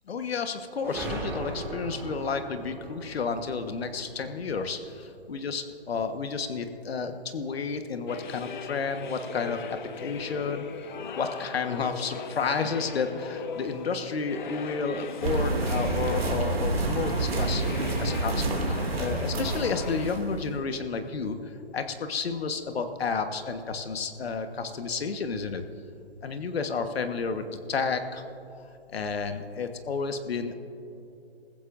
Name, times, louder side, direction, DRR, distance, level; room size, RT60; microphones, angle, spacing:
voice 1, 0.1-10.6 11.2-25.6 26.2-28.2 28.9-30.5, left 5 dB, 65° left, 7 dB, 1.4 m, -31 dB
sound 1, 0.8-5.3, right 2 dB, 5° right, 2.2 m, -39 dB
sound 2, 8.1-20.2, left 6 dB, 45° left, 1.1 m, -39 dB
sound 3, 15.2-20.5, right 3 dB, 65° right, 2.6 m, -28 dB
27.5 x 15.0 x 2.6 m, 2.8 s
hypercardioid pair, 150°, 33 cm